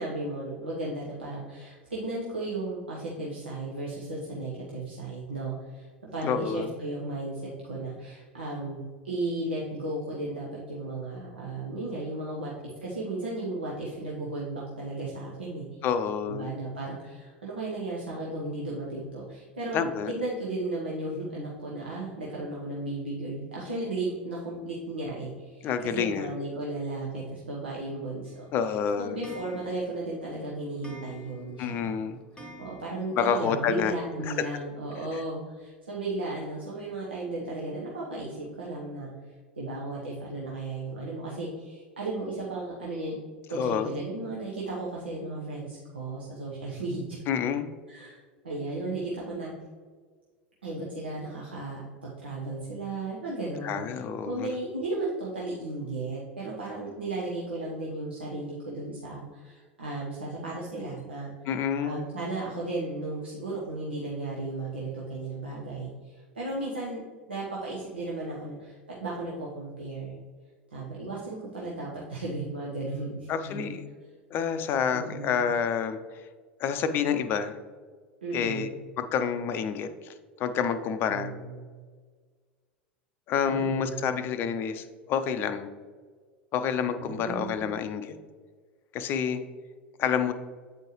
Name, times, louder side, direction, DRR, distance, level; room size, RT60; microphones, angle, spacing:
voice 1, 0.0-12.5 12.8-15.6 16.3-19.8 20.1-28.3 29.0-32.0 32.6-43.1 43.5-47.2 47.9-48.2 48.4-49.5 50.6-53.9 54.3-61.3 61.8-67.0 67.3-70.1 70.7-73.7 74.9-75.4 78.2-78.8 81.1-81.6 83.5-84.0 87.0-87.7, right 2 dB, 75° right, -5 dB, 1.0 m, -35 dB
voice 2, 6.2-6.7 15.8-16.5 19.7-20.1 25.6-26.3 28.5-29.2 31.6-32.2 33.2-33.9 34.3-34.4 43.5-43.9 47.3-47.7 53.6-54.5 61.5-62.0 73.3-73.8 74.3-76.0 76.6-77.6 78.3-78.7 79.0-81.3 83.3-85.7 86.5-88.1 88.9-89.4 90.0-90.3, left 7 dB, 40° left, 10 dB, 0.5 m, -28 dB
Clock, 28.3-33.3 33.7-33.8 34.0-34.1 34.3-34.4 35.6-35.7 36.2-36.3 36.9-37.0 37.5-37.6 38.1-38.2 38.8-38.9, right 1 dB, 15° left, 1.1 m, -50 dB
8.4 x 4.5 x 3.1 m, 1.5 s
figure-of-eight pair, 80°, 6 cm